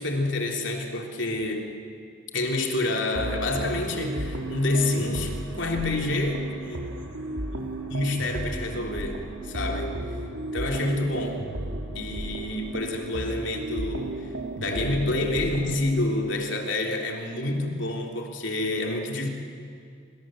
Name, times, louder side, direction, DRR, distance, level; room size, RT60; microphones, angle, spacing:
voice 1, 0.0-1.7 2.3-6.8 7.9-10.1 10.5-11.4 11.9-19.3, left 2 dB, 65° left, 2 dB, 3.3 m, -28 dB
sound 1, 3.2-16.0, right 1 dB, 85° right, 3.2 m, -34 dB
29.0 x 26.0 x 7.7 m, 2.3 s
head